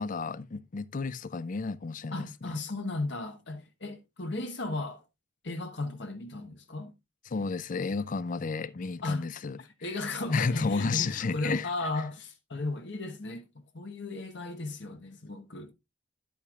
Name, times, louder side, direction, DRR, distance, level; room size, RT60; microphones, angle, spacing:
voice 1, 0.0-2.5 7.3-9.6 10.3-11.7, left 4 dB, 40° left, 0.4 m, -32 dB
voice 2, 2.1-5.0 5.4-6.9 9.0-9.3 9.6-13.5 13.7-15.7, left 2 dB, 60° left, 1.2 m, -35 dB
11.0 x 8.5 x 2.4 m
head